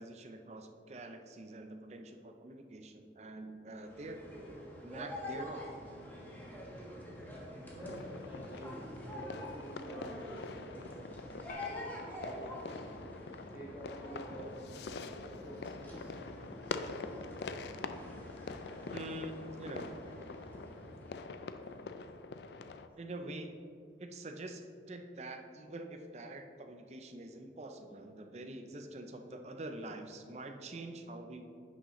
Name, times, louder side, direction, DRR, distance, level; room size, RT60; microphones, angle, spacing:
voice 1, 0.0-4.2 4.8-5.7 18.9-19.9 23.0-23.5 24.0-31.4, right 2 dB, 40° right, 5 dB, 0.5 m, -45 dB
sound 1, 3.7-22.2, left 1 dB, 10° left, 1.2 m, -47 dB
voice 2, 7.7-11.0 11.7-12.8 13.5-14.5 15.2-16.1, right 1 dB, 10° right, -8 dB, 1.9 m, -49 dB
sound 2, 7.8-22.9, left 4 dB, 75° left, 0.4 m, -45 dB
sound 3, 11.5-14.0, left 3 dB, 45° left, 0.8 m, -54 dB
10.5 x 6.3 x 3.1 m, 2.4 s
head